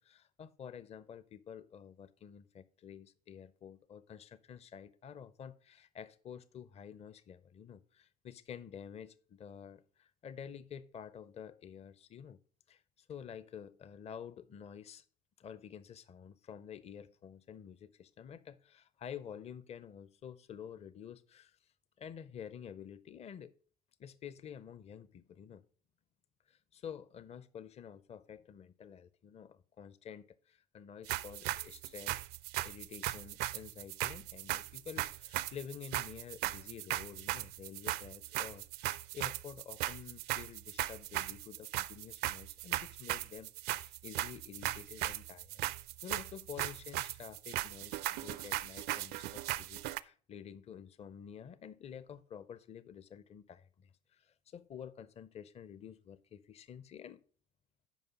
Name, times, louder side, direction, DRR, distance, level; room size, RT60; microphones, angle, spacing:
voice 1, 0.0-12.4 12.7-15.0 15.4-21.6 22.0-23.5 24.0-25.6 26.5-32.2 32.6-45.7 46.0-57.2, left 8 dB, 30° left, 0.7 m, -50 dB
sound 1, 31.1-50.0, right 16 dB, 55° right, 0.5 m, -38 dB
9.3 x 5.5 x 5.3 m
hypercardioid pair, 70°, 21 cm